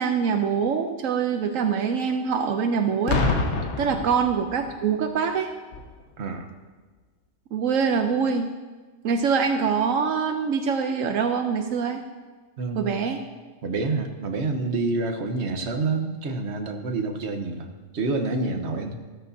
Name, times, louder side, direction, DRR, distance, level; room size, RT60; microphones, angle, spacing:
voice 1, 0.0-3.2 3.8-5.5 7.5-8.5 9.0-12.0 12.7-13.2, right 6 dB, 80° right, 5 dB, 1.1 m, -24 dB
Boom, 3.1-4.8 5.7-6.0, left 3 dB, 65° left, 1.3 m, -26 dB
voice 2, 6.2-6.5 12.6-13.0 13.6-17.7 17.9-19.0, right 3 dB, 55° right, 4 dB, 1.4 m, -28 dB
14.5 x 13.5 x 2.8 m, 1.3 s
omnidirectional pair, 1.4 m